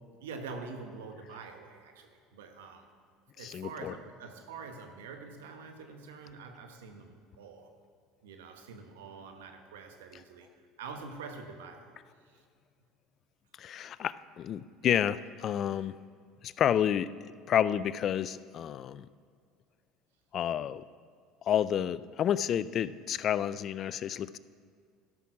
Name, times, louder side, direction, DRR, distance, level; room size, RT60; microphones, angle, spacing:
voice 1, 0.2-2.9 3.4-7.7 8.2-10.5 10.8-11.9 12.3-12.4, right 4 dB, 90° right, 6 dB, 1.0 m, -45 dB
voice 2, 3.4-4.0 13.6-16.0 16.4-19.1 20.3-20.8 21.4-24.4, left 9 dB, 50° left, 17 dB, 0.3 m, -30 dB
12.0 x 6.1 x 6.1 m, 2.1 s
supercardioid pair, 85°, 0 cm